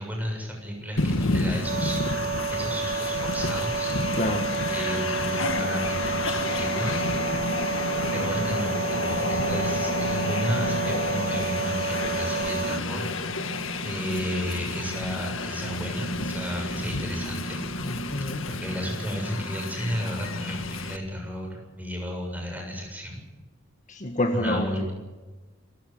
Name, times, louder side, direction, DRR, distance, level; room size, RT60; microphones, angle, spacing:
voice 1, 0.0-4.0 4.7-7.1 8.1-13.1 13.8-17.6 18.5-23.2 24.3-24.9, equal, 10° right, 2 dB, 7.2 m, -33 dB
Train, 1.0-21.0, left 2 dB, 75° left, 1.8 m, -30 dB
sound 1, 1.6-12.8, right 5 dB, 50° right, 0.6 m, -30 dB
voice 2, 4.1-4.6 17.8-18.5 19.3-19.4 23.9-24.9, left 1 dB, 40° left, 5 dB, 1.7 m, -28 dB
26.5 x 16.5 x 7.7 m, 1.2 s
head